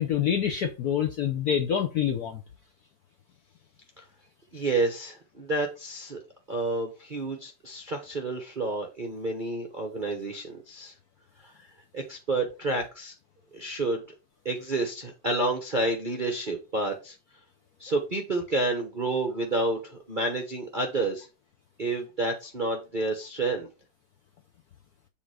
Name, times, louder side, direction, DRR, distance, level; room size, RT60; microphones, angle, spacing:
voice 1, 0.0-2.4, left 9 dB, 75° left, 0.9 m, -26 dB
voice 2, 4.5-6.2 6.5-10.9 11.5-11.7 11.9-13.1 13.5-14.0 14.4-17.2 17.8-21.3 21.8-23.7, right 2 dB, 45° right, 0.6 m, -29 dB
7.1 x 3.7 x 4.7 m
omnidirectional pair, 2.4 m